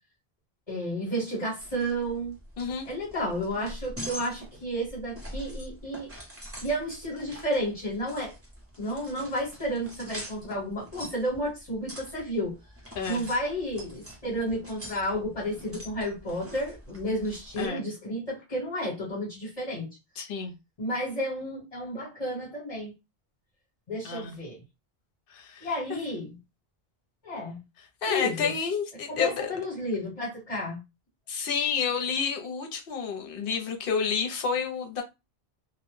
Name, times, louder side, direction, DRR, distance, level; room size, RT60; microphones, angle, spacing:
voice 1, 0.7-2.3 2.9-6.1 6.6-8.3 8.8-12.5 13.1-19.9 20.8-22.9 23.9-24.6 25.6-26.4 27.2-27.6 28.1-28.5 29.1-30.8, equal, 40° left, 1.1 m, -32 dB
sound 1, 1.6-17.7, equal, 15° right, 0.7 m, -44 dB
voice 2, 12.9-13.3 17.6-17.9 20.2-20.5 24.0-24.4 25.3-26.0 28.0-29.5 31.3-35.0, left 6 dB, 65° left, 0.8 m, -30 dB
2.1 x 2.1 x 3.0 m
omnidirectional pair, 1.0 m